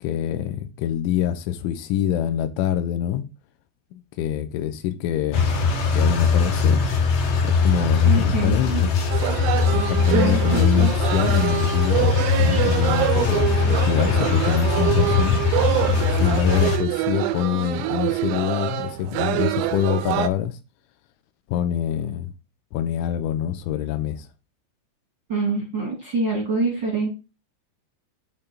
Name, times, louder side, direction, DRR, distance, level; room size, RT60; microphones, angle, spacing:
voice 1, 0.0-3.2 3.9-5.5 5.9-6.8 7.4-8.9 9.7-15.4 16.1-20.6 21.5-22.3 22.7-24.3, left 11 dB, 80° left, 3.0 m, -25 dB
sound 1, 5.3-16.8, left 5 dB, 65° left, 2.3 m, -21 dB
voice 2, 8.0-8.8 10.1-10.9 25.3-27.1, right 3 dB, 50° right, 1.3 m, -25 dB
sound 2, 9.1-20.3, right 14 dB, 90° right, 3.4 m, -25 dB
8.8 x 3.7 x 4.2 m
omnidirectional pair, 6.0 m